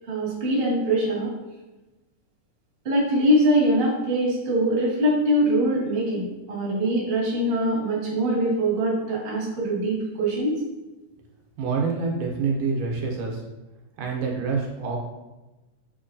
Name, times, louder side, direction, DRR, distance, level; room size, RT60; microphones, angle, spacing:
voice 1, 0.1-1.3 2.8-10.6, right 1 dB, 40° right, -6 dB, 0.8 m, -23 dB
voice 2, 11.6-13.4 14.0-15.0, right 4 dB, 80° right, -1 dB, 2.2 m, -26 dB
6.3 x 2.9 x 2.6 m, 1.1 s
omnidirectional pair, 3.6 m